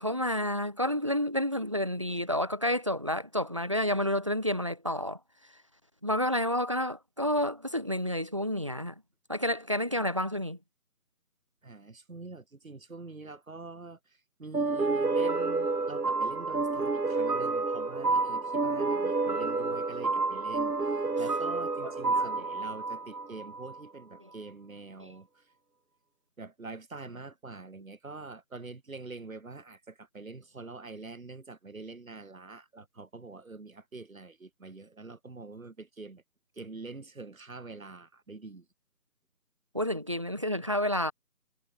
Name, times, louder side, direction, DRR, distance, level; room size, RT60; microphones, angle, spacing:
voice 1, 0.0-5.2 6.0-8.9 9.3-10.6 21.8-22.3 24.2-24.3 25.0-25.1 39.7-41.1, left 1 dB, 20° right, 0.9 m, -30 dB
voice 2, 11.6-14.0 14.4-25.4 26.4-36.2 36.6-38.6, right 3 dB, 60° right, 4.5 m, -45 dB
sound 1, 14.5-23.8, right 3 dB, 80° right, 2.4 m, -29 dB
figure-of-eight pair, 165°, 46 cm